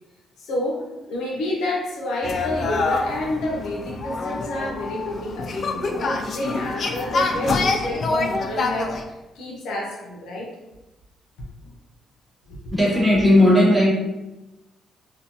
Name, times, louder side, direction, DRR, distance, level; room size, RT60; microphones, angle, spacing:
voice 1, 0.4-10.5 12.5-12.6, left 1 dB, 80° left, -2 dB, 0.6 m, -29 dB
sound 1, 2.2-9.0, left 3 dB, 50° left, 0.3 m, -26 dB
voice 2, 12.7-13.9, left 1 dB, 5° right, -7 dB, 1.3 m, -16 dB
2.6 x 2.2 x 2.7 m, 1.0 s
cardioid pair, 90°, 0 cm